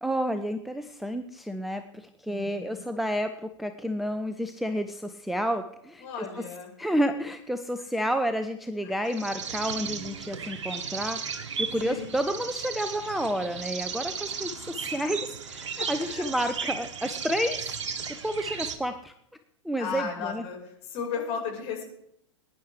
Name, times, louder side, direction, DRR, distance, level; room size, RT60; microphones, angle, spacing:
voice 1, 0.0-6.0 6.8-11.2 11.6-17.7 18.2-19.1 19.6-20.4, equal, ahead, 6 dB, 0.5 m, -30 dB
voice 2, 2.3-2.9 6.0-6.7 8.8-9.1 11.8-12.0 15.0-15.1 15.8-16.3 19.7-21.9, left 6 dB, 35° left, 0 dB, 4.8 m, -36 dB
sound 1, 9.1-18.8, right 6 dB, 65° right, 1.5 m, -35 dB
21.5 x 10.5 x 3.3 m, 0.76 s
figure-of-eight pair, 100°, 16 cm